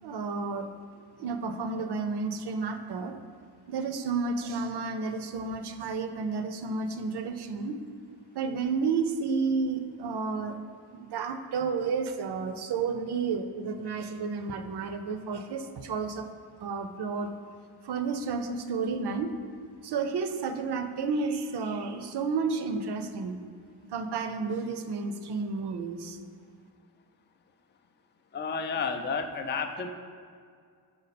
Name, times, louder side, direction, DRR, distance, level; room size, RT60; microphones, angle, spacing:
voice 1, 0.0-0.7 1.2-3.2 3.7-7.8 8.3-10.6 10.9-16.3 16.6-17.3 17.8-19.4 19.8-23.4 23.8-26.2, right 4 dB, 65° right, 8 dB, 0.6 m, -31 dB
voice 2, 28.3-29.9, left 5 dB, 25° left, 6 dB, 0.4 m, -31 dB
5.3 x 4.8 x 4.1 m, 2.2 s
cardioid pair, 90°, 43 cm